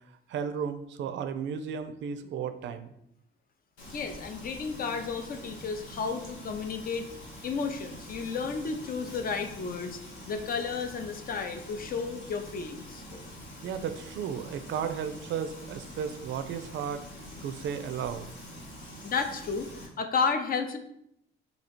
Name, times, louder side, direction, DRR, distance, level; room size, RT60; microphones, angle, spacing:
voice 1, 0.3-2.9 13.6-17.1 17.4-18.3, right 7 dB, 70° right, 10 dB, 0.4 m, -34 dB
Frying (food), 3.8-19.9, equal, 70° left, 1.2 m, -45 dB
voice 2, 3.9-7.1 7.4-10.0 10.3-13.0 19.0-19.7 20.0-20.8, left 5 dB, 45° left, 7 dB, 0.5 m, -32 dB
2.8 x 2.8 x 4.2 m, 0.75 s
cardioid pair, 90°, 20 cm